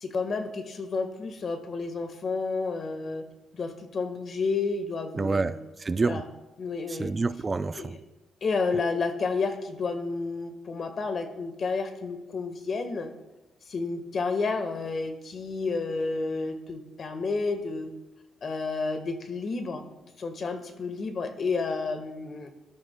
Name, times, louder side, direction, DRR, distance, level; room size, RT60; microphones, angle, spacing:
voice 1, 0.0-3.3 3.5-5.6 6.0-6.2 6.6-7.1 7.7-8.0 8.4-13.1 13.7-17.9 18.4-19.8 20.2-22.5, left 4 dB, 50° left, 7 dB, 1.4 m, -31 dB
voice 2, 5.1-6.2 6.9-7.9, right 3 dB, 30° right, 12 dB, 0.4 m, -28 dB
23.0 x 12.5 x 2.2 m, 1.0 s
cardioid pair, 90°, 0 cm